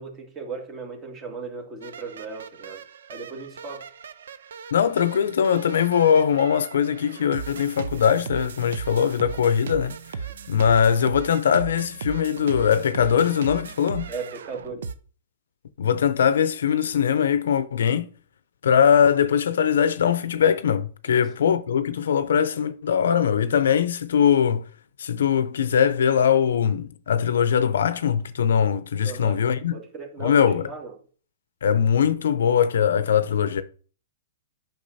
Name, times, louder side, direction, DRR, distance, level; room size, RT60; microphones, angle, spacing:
voice 1, 0.0-2.8 3.1-3.9 14.1-14.9 21.1-21.3 29.0-29.4 29.7-31.0, right 4 dB, 25° right, 1.8 m, -37 dB
sound 1, 1.8-14.9, right 6 dB, 75° right, 0.6 m, -37 dB
voice 2, 4.7-9.9 10.5-14.1 15.8-18.1 18.6-24.6 25.0-29.7 30.2-30.7 31.6-33.6, left 8 dB, 75° left, 0.6 m, -21 dB
8.5 x 6.0 x 2.7 m
hypercardioid pair, 130°, 0 cm